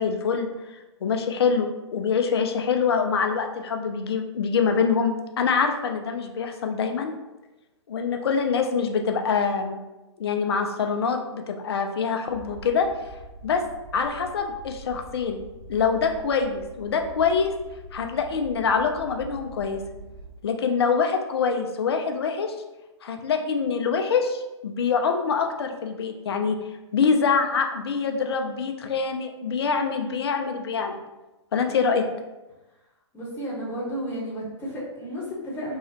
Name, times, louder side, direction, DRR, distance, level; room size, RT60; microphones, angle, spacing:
voice 1, 0.0-7.1 7.9-9.8 10.2-12.9 13.4-13.6 13.9-15.4 15.7-17.5 17.9-19.8 20.4-22.6 23.0-26.6 26.9-31.0 31.5-32.0, left 5 dB, 60° left, 5 dB, 0.4 m, -25 dB
sound 1, 12.3-20.3, right 1 dB, 15° right, 1.1 m, -44 dB
voice 2, 33.1-35.8, equal, 15° left, -6 dB, 1.0 m, -32 dB
2.8 x 2.3 x 2.8 m, 1.0 s
figure-of-eight pair, 115°, 15 cm